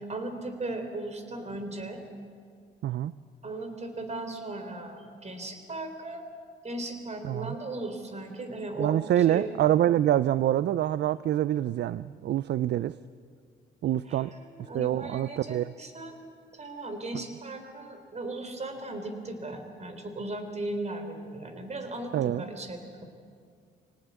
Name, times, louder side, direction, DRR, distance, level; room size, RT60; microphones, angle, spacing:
voice 1, 0.0-2.0 3.4-6.2 6.6-9.5 14.1-16.2 16.5-23.0, right 2 dB, 35° right, 7 dB, 3.8 m, -37 dB
voice 2, 8.8-12.9 13.8-14.3 14.7-15.7 22.1-22.4, right 12 dB, 60° right, 16 dB, 0.5 m, -26 dB
25.0 x 18.5 x 8.3 m, 2.1 s
cardioid pair, 90°, 20 cm